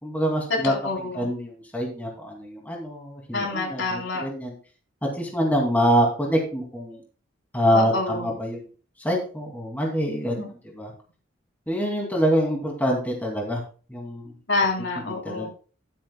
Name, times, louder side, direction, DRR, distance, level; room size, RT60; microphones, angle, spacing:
voice 1, 0.0-0.7 1.1-4.5 5.0-7.0 7.5-8.6 9.0-10.4 10.8-10.9 11.7-13.6 13.9-14.3 15.2-15.5, equal, 10° left, -1 dB, 2.6 m, -25 dB
voice 2, 0.6-1.3 3.3-4.2 7.7-8.3 10.4-10.5 14.5-15.5, left 3 dB, 65° left, 0 dB, 3.9 m, -27 dB
12.0 x 12.0 x 2.3 m, 0.37 s
head